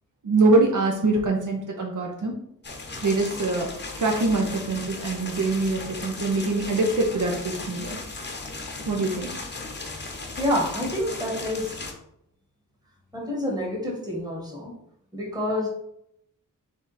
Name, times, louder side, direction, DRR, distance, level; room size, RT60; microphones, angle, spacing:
voice 1, 0.2-2.3 3.0-8.0 8.9-9.3, right 2 dB, 65° right, 1 dB, 0.8 m, -24 dB
sound 1, 2.6-11.9, left 3 dB, 30° left, 0.8 m, -36 dB
voice 2, 10.4-11.8 13.1-14.7 15.1-15.7, left 1 dB, 10° right, -2 dB, 1.5 m, -28 dB
3.6 x 3.5 x 4.1 m, 0.74 s
wide cardioid pair, 105°, 33 cm